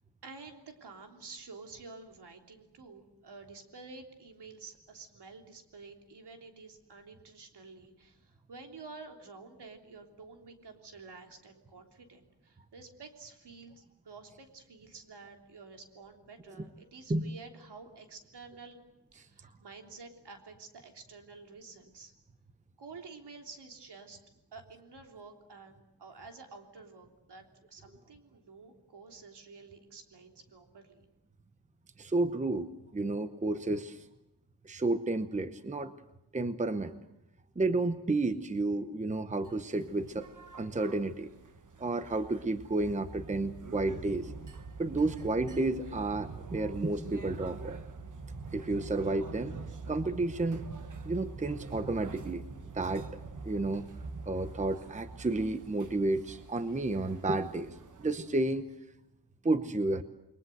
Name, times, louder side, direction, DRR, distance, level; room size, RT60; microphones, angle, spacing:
voice 1, 0.2-18.8 19.1-22.1 22.8-24.2 24.5-31.1, right 4 dB, 70° right, 3 dB, 3.4 m, -50 dB
voice 2, 32.0-34.0 34.6-35.9 36.3-37.0 37.6-40.3 40.6-41.3 41.8-44.3 44.8-47.8 48.5-49.6 49.9-50.6 51.1-52.5 52.7-53.9 54.3-58.7 59.4-60.0, right 2 dB, 15° right, 10 dB, 0.9 m, -31 dB
sound 1, 39.4-58.6, right 4 dB, 45° right, 1.4 m, -45 dB
29.0 x 22.5 x 7.9 m, 0.89 s
wide cardioid pair, 175°, 42 cm